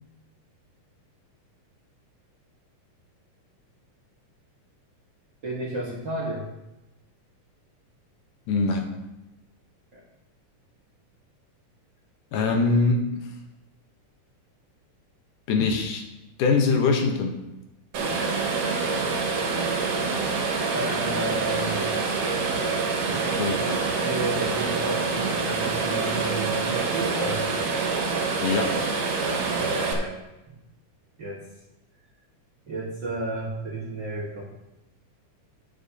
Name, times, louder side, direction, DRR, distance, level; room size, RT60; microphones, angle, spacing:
voice 1, 5.4-6.5 9.9-10.0 20.7-21.9 22.6-22.7 23.5-27.4 29.2-30.2 31.2-31.4 32.7-34.4, right 2 dB, 45° right, -4 dB, 1.7 m, -32 dB
voice 2, 8.5-8.9 12.3-13.3 15.5-16.0 16.4-17.4 23.1-23.6 28.4-28.8, left 4 dB, 75° left, 2 dB, 2.5 m, -23 dB
sound 1, 17.9-29.9, right 4 dB, 75° right, 3.0 m, -26 dB
12.0 x 9.2 x 2.8 m, 0.97 s
omnidirectional pair, 3.9 m